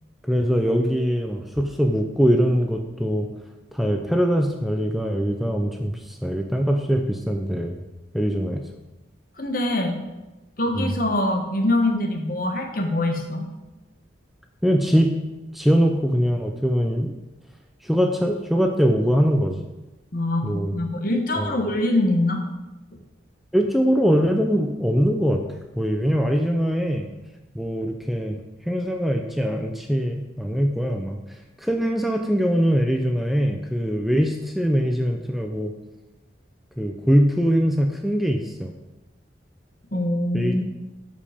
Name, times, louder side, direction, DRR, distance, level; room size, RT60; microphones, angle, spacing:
voice 1, 0.2-3.3 3.7-7.7 8.1-8.6 10.8-10.9 14.6-15.2 15.5-17.1 17.8-19.6 20.4-20.8 21.3-21.6 23.5-25.4 25.8-27.1 27.5-28.4 28.7-35.7 36.8-38.7 40.3-40.5, equal, ahead, 3 dB, 0.6 m, -22 dB
voice 2, 9.4-10.0 10.6-13.5 20.1-22.4 39.9-40.6, left 1 dB, 50° left, 3 dB, 1.3 m, -24 dB
12.5 x 5.3 x 5.1 m, 1.1 s
head